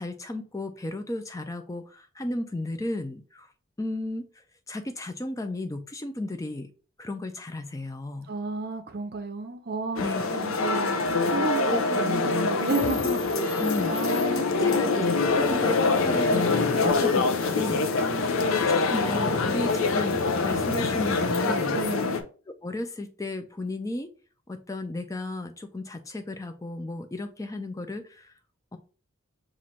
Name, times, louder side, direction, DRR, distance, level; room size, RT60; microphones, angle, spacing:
voice 1, 0.0-3.5 3.8-4.2 4.7-6.7 7.0-8.3 10.0-10.6 11.6-11.8 13.6-18.3 18.9-21.8 22.6-24.1 24.5-28.3 28.7-28.8, left 2 dB, 15° left, 0.4 m, -34 dB
voice 2, 8.3-10.0 10.3-14.9 16.7-17.0 18.0-18.7 21.7-22.2, right 3 dB, 45° right, 0.6 m, -33 dB
sound 1, 10.0-22.2, left 3 dB, 75° left, 0.6 m, -25 dB
5.6 x 2.5 x 3.1 m
head